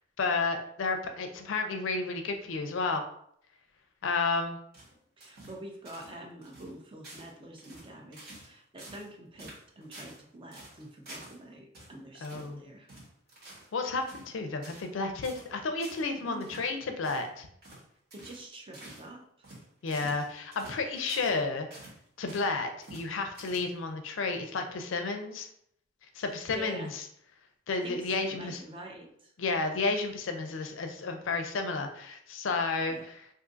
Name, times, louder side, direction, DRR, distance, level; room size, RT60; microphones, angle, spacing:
voice 1, 0.2-3.0 4.0-4.6 12.2-12.6 13.7-17.5 19.8-21.9 22.2-25.5 26.1-27.0 27.7-28.6 29.4-33.2, left 3 dB, 75° left, 6 dB, 0.5 m, -32 dB
sound 1, 4.7-5.6 5.9-6.2 6.4-6.7 7.0-7.3 7.6-8.5 8.8-9.1 9.4-10.2 10.5-11.4 11.7-11.9 12.2-12.5 12.9-13.7 14.0-14.3 14.6-14.9 15.2-15.5 15.8-16.1 16.4-16.7 17.0-17.3 17.6-17.8 18.1-18.4 18.7-19.1 19.4-21.4 21.7-22.5 22.8-23.1 23.3-23.9, right 1 dB, 55° right, 1.2 m, -49 dB
voice 2, 5.2-12.9 16.2-16.5 18.1-19.5 26.2-26.9 27.8-29.3 32.9-33.1, right 1 dB, 25° right, 1 dB, 0.5 m, -46 dB
2.6 x 2.5 x 3.8 m, 0.69 s
head